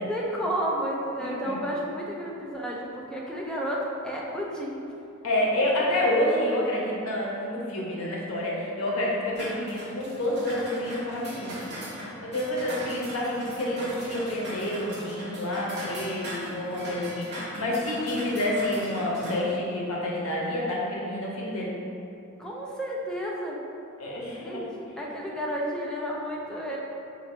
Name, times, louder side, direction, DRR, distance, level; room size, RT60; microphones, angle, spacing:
voice 1, 0.0-4.8 22.4-23.6 24.3-24.6 25.0-26.8, equal, 5° left, -4 dB, 0.4 m, -31 dB
voice 2, 1.2-1.6 5.2-11.6 12.2-21.7 24.0-24.6, left 1 dB, 75° left, -4 dB, 0.8 m, -28 dB
sound 1, 9.4-19.4, equal, 55° right, 0.9 m, -39 dB
4.2 x 2.6 x 3.0 m, 2.7 s
head